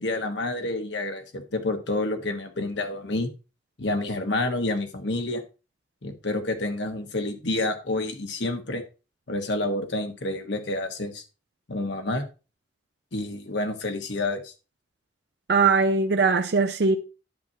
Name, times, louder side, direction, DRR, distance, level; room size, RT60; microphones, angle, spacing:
voice 1, 0.0-3.3 3.8-5.4 6.0-8.8 9.3-11.2 11.7-12.2 13.1-14.5, left 2 dB, 85° left, 1.3 m, -29 dB
voice 2, 15.5-17.0, right 4 dB, 65° right, 0.6 m, -20 dB
9.4 x 7.6 x 2.8 m
head